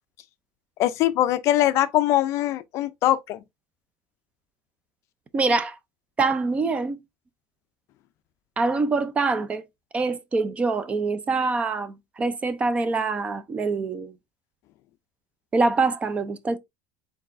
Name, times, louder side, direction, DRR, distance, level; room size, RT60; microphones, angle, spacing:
voice 1, 0.8-3.4, left 14 dB, 45° left, 0.4 m, -22 dB
voice 2, 5.3-5.8 6.2-7.0 8.6-9.6 9.9-14.1 15.5-16.6, right 3 dB, 20° right, 0.4 m, -24 dB
4.3 x 4.0 x 2.5 m
cardioid pair, 160°, 7 cm